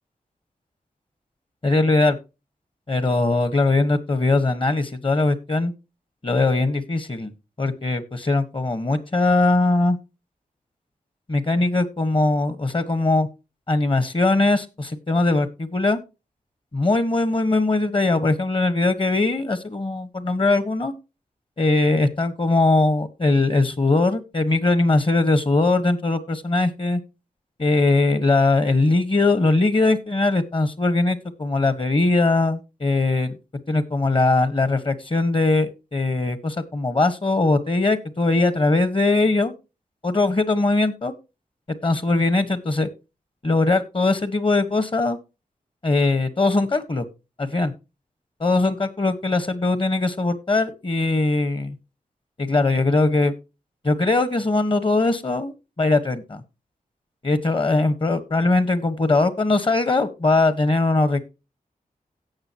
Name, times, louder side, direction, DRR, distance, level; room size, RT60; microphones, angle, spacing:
voice 1, 1.6-2.2 2.9-5.7 6.2-7.3 7.6-10.0 11.3-13.3 13.7-16.0 16.7-20.9 21.6-27.0 27.6-33.4 33.7-39.5 40.0-41.1 41.8-42.9 43.4-45.2 45.8-47.0 47.4-47.7 48.4-51.8 52.4-53.3 53.8-56.4 57.2-61.2, left 2 dB, 35° left, 13 dB, 1.3 m, -20 dB
17.0 x 6.1 x 2.9 m, 0.28 s
wide cardioid pair, 90°, 15 cm